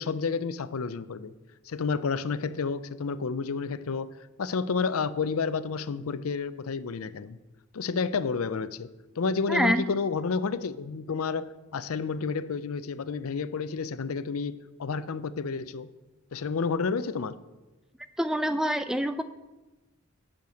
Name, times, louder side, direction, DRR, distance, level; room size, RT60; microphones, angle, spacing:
voice 1, 0.0-1.3 1.7-4.1 4.4-7.4 7.7-8.9 9.2-15.9 16.3-17.4, left 5 dB, 75° left, 15 dB, 0.5 m, -30 dB
voice 2, 9.5-9.9 18.2-19.2, equal, 5° right, 10 dB, 0.4 m, -26 dB
8.4 x 6.7 x 7.6 m, 1.1 s
head